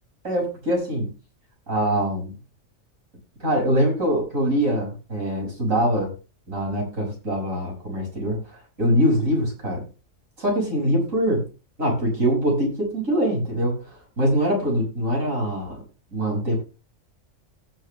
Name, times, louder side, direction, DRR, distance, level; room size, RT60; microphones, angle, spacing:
voice 1, 0.2-1.1 1.7-2.3 3.4-6.1 6.5-9.8 10.4-11.4 11.8-15.8 16.1-16.6, equal, 90° right, -1 dB, 6.9 m, -23 dB
17.5 x 7.1 x 3.3 m, 0.31 s
omnidirectional pair, 1.3 m